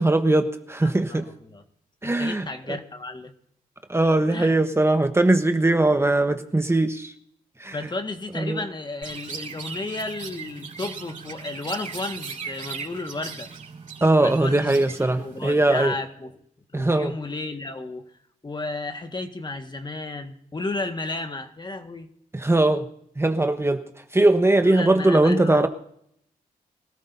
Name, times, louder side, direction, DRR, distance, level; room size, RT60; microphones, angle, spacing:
voice 1, 0.0-1.3 2.0-2.8 3.9-7.1 7.6-7.8 8.4-8.6 14.0-15.9 16.7-17.1 22.3-22.9 23.2-23.8 24.1-25.7, right 2 dB, 15° right, 7 dB, 1.2 m, -20 dB
voice 2, 0.8-1.6 2.0-3.3 4.3-4.5 7.7-13.5 14.2-14.7 15.2-16.4 16.7-18.1 18.4-22.1 24.6-25.7, left 2 dB, 30° left, 6 dB, 1.7 m, -33 dB
Chirp tweet, 9.0-15.9, right 5 dB, 55° right, 4.9 m, -38 dB
24.5 x 14.0 x 2.7 m, 0.69 s
cardioid pair, 65°, 16 cm